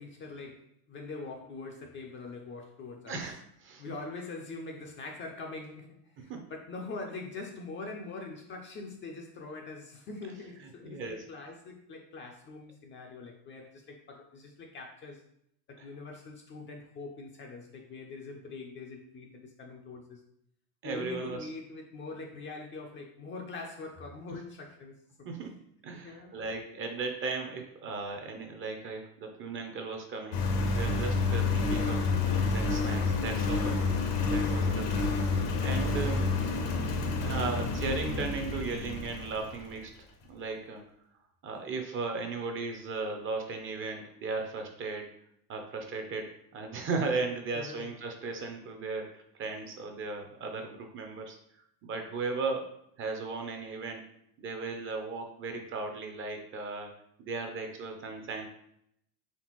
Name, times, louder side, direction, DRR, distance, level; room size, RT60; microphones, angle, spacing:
voice 1, 0.0-3.2 3.8-15.2 15.7-20.2 20.8-24.9 25.9-26.3 34.4-34.9 47.5-47.9, left 3 dB, 25° left, 1 dB, 0.4 m, -43 dB
voice 2, 3.1-3.8 6.2-6.4 10.8-11.2 15.8-15.9 20.8-21.4 24.3-24.4 25.2-25.6 25.8-30.4 30.7-33.8 34.3-35.2 35.6-36.3 37.2-39.9 40.3-40.8 41.4-45.1 45.5-51.4 51.8-52.7 53.0-54.0 54.4-56.9 57.2-58.5, right 4 dB, 25° right, 4 dB, 0.5 m, -36 dB
Engine, 30.3-39.8, left 3 dB, 70° left, 1.0 m, -29 dB
4.3 x 3.3 x 3.0 m, 0.73 s
supercardioid pair, 110°, 48 cm